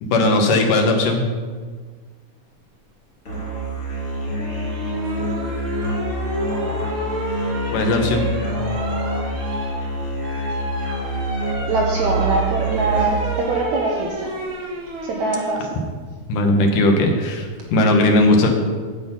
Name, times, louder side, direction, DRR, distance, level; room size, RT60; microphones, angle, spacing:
voice 1, 0.0-1.2 7.7-8.3 16.3-18.5, left 2 dB, 65° left, 2 dB, 2.5 m, -17 dB
Musical instrument, 3.2-13.4, right 1 dB, 25° left, 2.2 m, -26 dB
sound 1, 4.4-15.6 17.2-17.6, right 2 dB, 50° right, 1.6 m, -31 dB
voice 2, 11.7-14.3 15.0-15.8, right 2 dB, 70° right, -1 dB, 1.8 m, -23 dB
10.5 x 7.7 x 5.5 m, 1.5 s
omnidirectional pair, 4.4 m